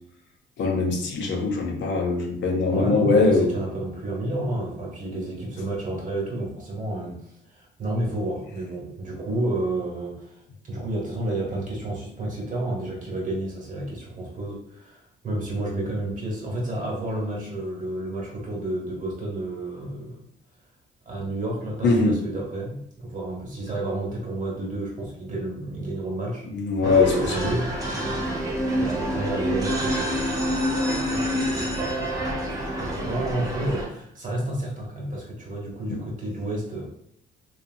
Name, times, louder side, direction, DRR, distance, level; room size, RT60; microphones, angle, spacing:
voice 1, 0.6-3.5 21.8-22.2 26.5-27.5 35.9-36.0, left 3 dB, 65° left, 2 dB, 0.6 m, -22 dB
voice 2, 2.7-20.2 21.0-26.5 26.8-27.7 28.8-30.4 30.9-36.9, right 1 dB, 40° right, -2 dB, 1.1 m, -31 dB
sound 1, 26.8-33.9, equal, 15° right, 0.8 m, -27 dB
2.8 x 2.4 x 2.6 m, 0.71 s
cardioid pair, 90°, 20 cm